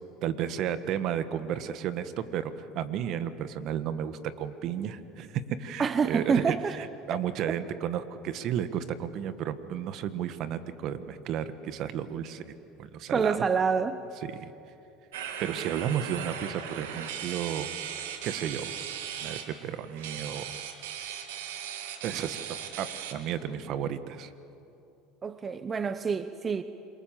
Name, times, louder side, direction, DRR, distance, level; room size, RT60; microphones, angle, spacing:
voice 1, 0.2-12.4 12.8-13.4 14.2-14.5 15.2-17.7 18.2-18.7 19.2-20.6 21.0-21.1 22.0-22.4 22.8-24.3, right 9 dB, 55° right, 1.4 m, -33 dB
voice 2, 5.8-6.8 13.1-14.0 25.2-26.6, right 5 dB, 30° right, 0.9 m, -27 dB
sound 1, 15.1-23.1, right 8 dB, 85° right, 2.0 m, -38 dB
27.0 x 23.0 x 7.6 m
hypercardioid pair, 90°, 0 cm